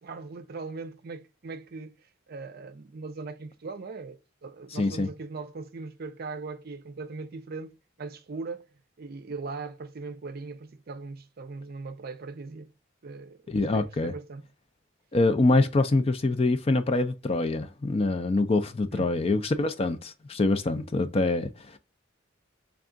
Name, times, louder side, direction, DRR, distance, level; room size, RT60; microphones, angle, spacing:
voice 1, 0.0-8.7 9.0-12.7 13.0-13.4 13.7-14.5 18.9-19.1, right 4 dB, 50° right, 0.5 m, -39 dB
voice 2, 4.7-5.1 13.5-14.1 15.1-21.8, left 2 dB, 30° left, 0.4 m, -25 dB
3.5 x 2.3 x 3.7 m
head